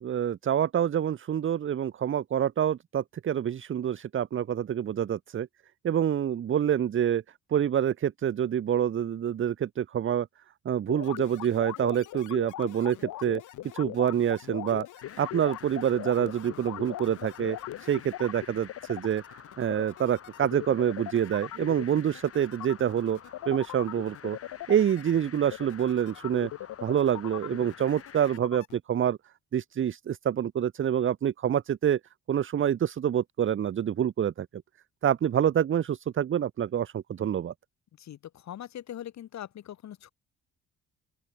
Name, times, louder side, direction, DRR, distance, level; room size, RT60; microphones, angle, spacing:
voice 1, 0.0-5.5 5.8-7.2 7.5-10.3 10.6-13.4 13.7-14.9 15.2-23.2 23.5-24.4 24.7-26.5 26.8-29.2 29.5-32.0 32.3-34.5 35.0-37.5, right 9 dB, 40° right, 0.7 m, -27 dB
sound 1, 10.9-28.7, left 14 dB, 85° left, 2.9 m, -40 dB
sound 2, 15.0-28.4, left 7 dB, 50° left, 6.0 m, -49 dB
voice 2, 38.0-40.1, left 11 dB, 65° left, 1.9 m, -42 dB
open air
cardioid pair, 90°, 30 cm